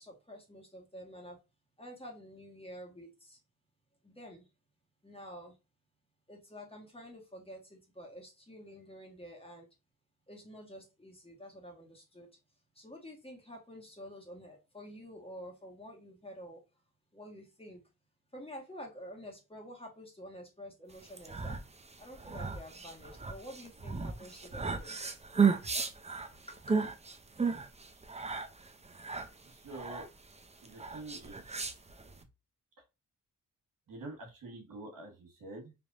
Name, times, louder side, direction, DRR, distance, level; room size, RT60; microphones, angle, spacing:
voice 1, 0.0-1.4 1.8-3.4 4.0-4.5 5.0-5.6 6.3-9.7 10.3-12.4 12.7-16.6 17.1-17.8 18.3-21.6 22.0-25.0 25.6-25.7 26.5-26.7, equal, 15° left, 1.4 m, -49 dB
sound 1, 21.0-32.2, right 5 dB, 20° right, 0.5 m, -34 dB
voice 2, 29.4-30.0 30.6-31.6 32.1-32.2 33.9-35.7, right 2 dB, 85° right, 1.5 m, -47 dB
3.4 x 2.9 x 2.5 m
cardioid pair, 75°, 33 cm